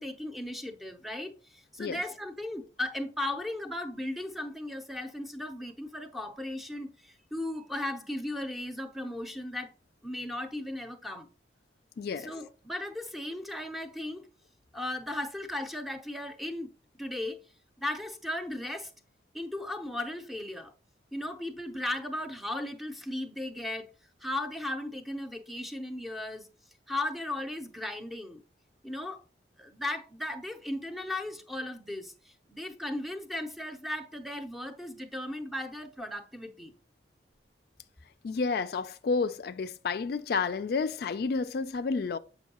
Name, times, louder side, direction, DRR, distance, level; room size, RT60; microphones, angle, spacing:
voice 1, 0.0-9.7 10.0-11.3 12.2-14.2 14.7-16.7 17.0-17.4 17.8-18.9 19.3-20.7 21.1-23.9 24.2-26.5 26.9-28.4 28.8-29.2 29.6-36.7, left 1 dB, ahead, 0.6 m, -36 dB
voice 2, 12.0-12.3 38.2-42.2, left 4 dB, 60° left, 0.3 m, -30 dB
7.2 x 5.3 x 2.9 m
head